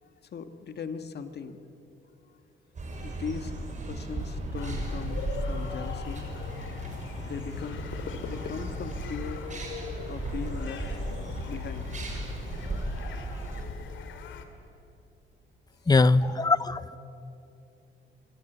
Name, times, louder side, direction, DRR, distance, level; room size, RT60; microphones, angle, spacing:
voice 1, 0.0-1.6 3.0-3.5 3.8-6.2 7.2-7.9 8.3-9.4 10.1-10.8 11.5-11.9, left 6 dB, 55° left, 9 dB, 1.8 m, -39 dB
sound 1, 2.7-13.6, right 2 dB, 35° right, 6.7 m, -36 dB
sound 2, 4.5-14.4, left 6 dB, 75° left, 2.6 m, -39 dB
voice 2, 15.9-17.0, left 3 dB, 20° left, 16 dB, 0.9 m, -22 dB
26.0 x 25.5 x 8.2 m, 2.8 s
cardioid pair, 90°, 20 cm